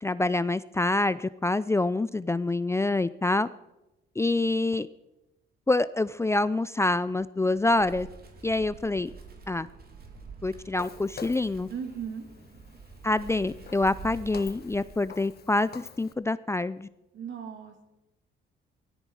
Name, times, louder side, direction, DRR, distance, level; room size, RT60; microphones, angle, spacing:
voice 1, 0.0-3.5 4.2-4.9 5.7-8.1 8.4-9.1 9.5-9.7 10.4-11.7 13.0-16.9, left 2 dB, 15° left, 16 dB, 0.4 m, -26 dB
Wind, 7.5-15.3, right 4 dB, 50° right, 2.8 m, -47 dB
Walk footsteps, 10.8-16.1, left 7 dB, 50° left, 1.1 m, -48 dB
voice 2, 11.7-12.3 17.1-17.7, right 7 dB, 70° right, 5 dB, 2.8 m, -36 dB
17.0 x 14.0 x 4.8 m, 0.96 s
cardioid pair, 90°, 20 cm